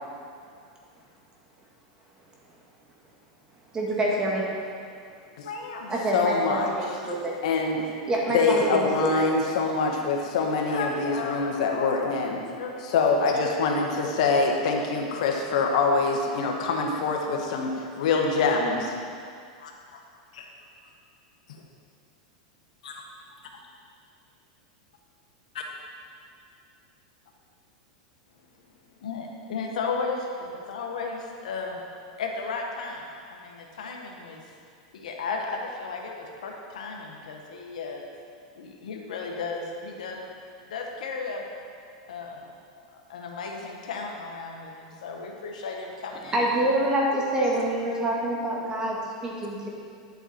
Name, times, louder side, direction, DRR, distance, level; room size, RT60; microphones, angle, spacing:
voice 1, 3.7-4.4 5.9-7.4 8.1-9.3 46.3-49.7, right 1 dB, 20° right, -3 dB, 2.0 m, -26 dB
voice 2, 5.4-6.0 7.0-7.2 8.5-8.6 10.7-12.1 12.4-13.1 19.6-20.0 20.3-20.5 21.5-21.6 22.8-23.0 25.5-25.6 29.0-31.8 32.2-34.4 34.9-38.0 38.6-40.3 40.7-41.4 42.1-42.5 42.8-46.5, left 4 dB, 85° left, 1 dB, 1.5 m, -35 dB
voice 3, 6.1-6.7 7.4-7.8 8.3-12.4 12.9-18.9, left 4 dB, 70° left, 1 dB, 1.4 m, -24 dB
11.0 x 7.9 x 4.4 m, 2.3 s
supercardioid pair, 130°, 4 cm